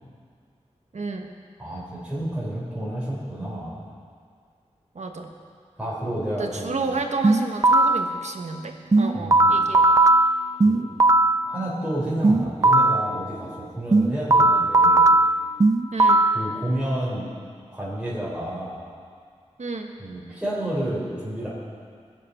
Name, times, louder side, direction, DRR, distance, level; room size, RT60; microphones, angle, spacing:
voice 1, 0.9-1.3 4.9-5.3 6.3-10.0 15.9-16.2 19.6-19.9, right 3 dB, 70° right, 3 dB, 1.3 m, -31 dB
voice 2, 1.6-3.8 5.8-6.9 9.1-9.6 10.6-10.8 11.4-15.1 16.3-17.3 17.7-18.8 20.0-21.5, right 1 dB, 10° right, -8 dB, 4.1 m, -30 dB
sound 1, 7.2-8.1 8.9-11.4 12.2-13.1 13.9-16.4, right 2 dB, 30° right, 0.3 m, -17 dB
22.0 x 7.5 x 5.6 m, 2.1 s
wide cardioid pair, 90°, 12 cm